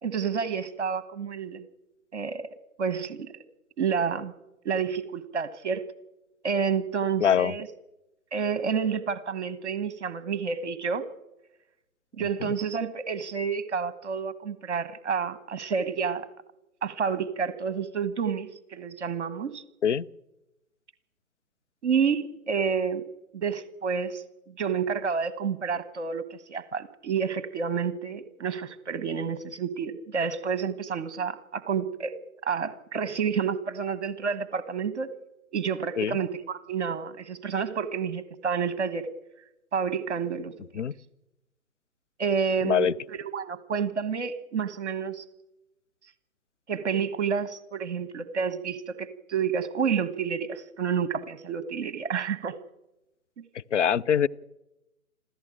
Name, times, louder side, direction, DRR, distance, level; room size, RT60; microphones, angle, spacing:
voice 1, 0.0-1.6 2.1-2.5 2.8-3.3 3.8-4.3 4.6-5.8 6.4-7.7 8.3-11.0 12.2-16.3 16.8-19.6 21.8-23.0 23.3-24.2 24.6-26.2 26.5-32.2 32.4-35.1 35.5-39.1 39.7-40.5 42.2-45.2 46.7-52.6, right 6 dB, 50° right, 14 dB, 1.3 m, -29 dB
voice 2, 7.2-7.5 12.4-12.5 19.8-20.1 36.0-36.2 40.8-40.9 42.6-42.9 53.7-54.3, left 8 dB, 55° left, 14 dB, 0.7 m, -23 dB
27.0 x 14.5 x 8.9 m, 0.96 s
figure-of-eight pair, 130°, 43 cm